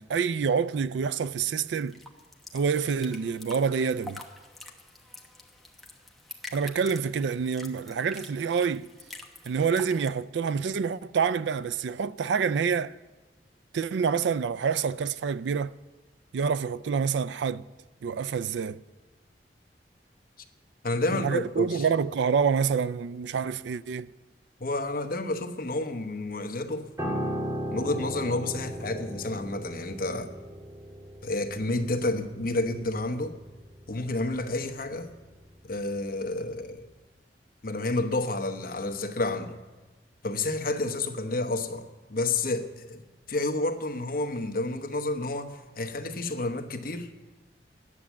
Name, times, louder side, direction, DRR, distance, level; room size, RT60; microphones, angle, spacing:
voice 1, 0.0-2.0 2.5-4.2 6.5-8.9 9.4-12.9 13.7-15.8 16.3-17.7 18.0-18.8 21.1-24.1, right 6 dB, 85° right, 0.4 m, -27 dB
sound 1, 1.2-10.1, left 2 dB, ahead, 1.1 m, -47 dB
voice 2, 20.8-21.9 24.6-26.9 27.7-30.3 31.2-33.3 33.9-35.1 35.6-36.9 37.6-39.6 40.2-43.0 43.3-47.1, left 2 dB, 55° left, 1.1 m, -30 dB
Piano, 27.0-36.4 36.6-36.9, equal, 15° right, 1.9 m, -37 dB
12.5 x 9.8 x 7.2 m
head